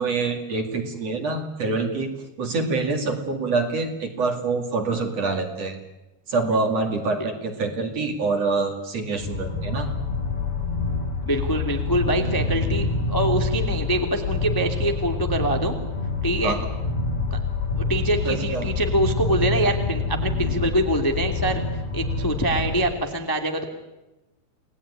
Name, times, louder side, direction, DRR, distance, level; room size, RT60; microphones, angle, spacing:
voice 1, 0.0-2.1 2.4-5.8 6.3-9.9 16.4-16.7 18.2-18.7, right 3 dB, 45° right, 4 dB, 3.2 m, -26 dB
sound 1, 9.2-22.8, left 3 dB, 85° left, 6.4 m, -27 dB
voice 2, 11.2-15.7 16.2-16.6 17.3-17.4 17.8-21.6 21.9-23.7, right 1 dB, 10° left, 4 dB, 1.5 m, -24 dB
29.5 x 19.5 x 9.8 m, 1.0 s
omnidirectional pair, 4.6 m